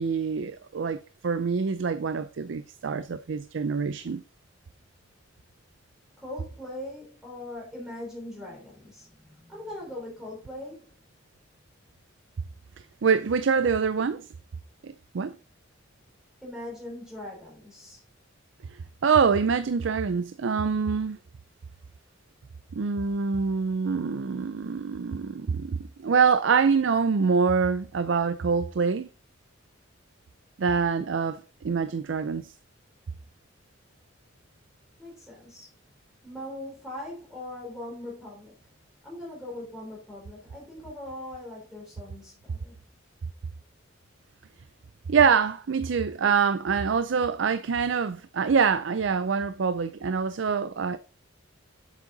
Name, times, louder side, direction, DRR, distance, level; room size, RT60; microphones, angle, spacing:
voice 1, 0.0-4.2 13.0-14.3 14.8-15.4 19.0-21.2 22.7-29.1 30.6-32.5 45.1-51.0, right 5 dB, 65° right, 0.4 m, -25 dB
voice 2, 6.2-10.9 16.4-18.0 35.0-35.7 36.2-38.6 39.0-42.7, left 1 dB, 5° right, 3.6 m, -40 dB
7.8 x 7.2 x 3.9 m
head